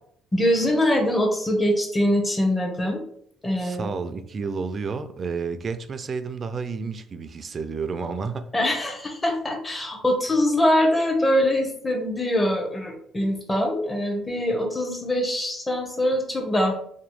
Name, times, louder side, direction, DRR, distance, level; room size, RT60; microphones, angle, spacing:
voice 1, 0.3-3.0 3.4-3.9 8.5-16.7, left 1 dB, 15° left, 0.8 m, -23 dB
voice 2, 3.6-8.5, right 5 dB, 45° right, 0.3 m, -31 dB
2.9 x 2.0 x 3.1 m
supercardioid pair, 75°, 0 cm